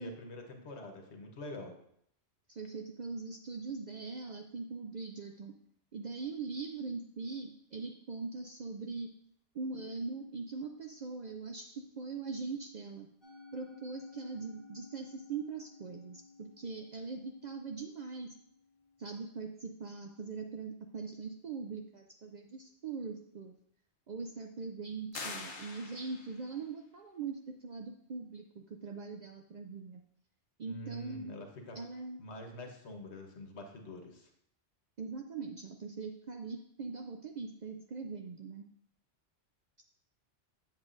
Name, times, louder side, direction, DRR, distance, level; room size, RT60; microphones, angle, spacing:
voice 1, 0.0-1.8 30.6-31.9 32.2-34.3, left 1 dB, 75° left, 3 dB, 1.3 m, -46 dB
voice 2, 2.5-5.5 5.9-9.1 9.5-13.1 13.5-18.3 19.0-23.5 24.1-30.0 30.6-31.3 31.8-32.2 35.0-38.6, right 4 dB, 60° right, 3 dB, 0.5 m, -41 dB
Musical instrument, 13.2-19.6, left 4 dB, 25° right, 3.1 m, -56 dB
sound 1, 25.1-26.5, left 4 dB, 50° left, 0.8 m, -44 dB
7.4 x 7.3 x 2.5 m, 0.70 s
omnidirectional pair, 1.1 m